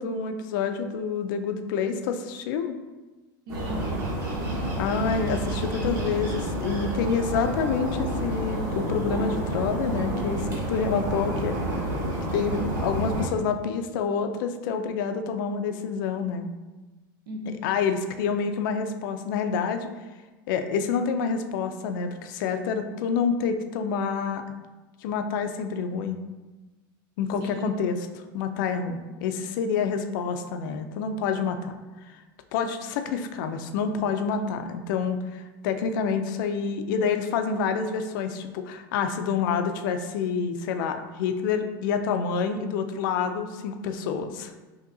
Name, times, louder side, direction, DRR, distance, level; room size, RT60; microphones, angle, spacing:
voice 1, 0.0-2.8 4.8-11.9 12.3-16.5 17.6-19.9 20.5-24.4 25.0-26.2 27.2-28.0 28.3-31.7 32.5-44.5, left 6 dB, 65° left, 7 dB, 0.4 m, -28 dB
sound 1, 3.5-13.3, right 1 dB, 30° right, 1.2 m, -29 dB
voice 2, 3.5-4.8 17.3-17.8 27.4-27.7 29.8-30.0, equal, 75° right, 2 dB, 0.8 m, -38 dB
5.3 x 2.8 x 2.6 m, 1.2 s
supercardioid pair, 150°, 12 cm